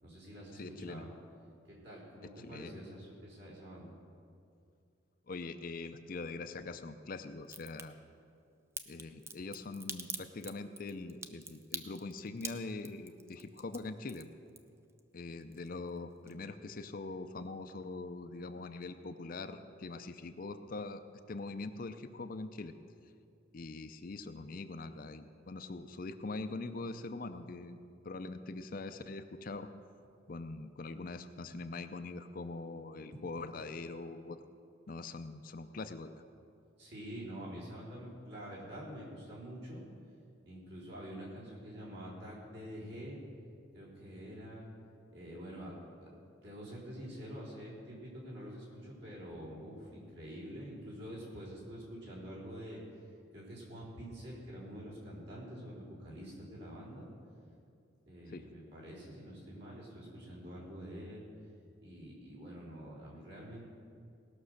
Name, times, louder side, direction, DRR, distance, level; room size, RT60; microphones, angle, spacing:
voice 1, 0.0-1.1 1.7-3.9 33.1-33.2 36.8-39.8 40.5-43.2 43.7-44.7 45.1-45.7 46.4-52.8 53.3-57.1 58.1-61.2 61.8-63.7, equal, 60° right, -6 dB, 3.8 m, -47 dB
voice 2, 0.6-1.0 2.4-2.8 5.3-8.0 8.9-14.3 15.1-21.0 21.3-22.7 23.5-27.8 28.0-29.7 30.3-34.4 34.9-36.1 58.3-58.5, left 3 dB, 45° left, 9 dB, 0.5 m, -43 dB
Crack, 7.4-7.8 8.8-15.0 15.3-16.0 16.3-16.4, right 4 dB, 15° right, 0.4 m, -44 dB
18.0 x 6.2 x 6.5 m, 2.4 s
head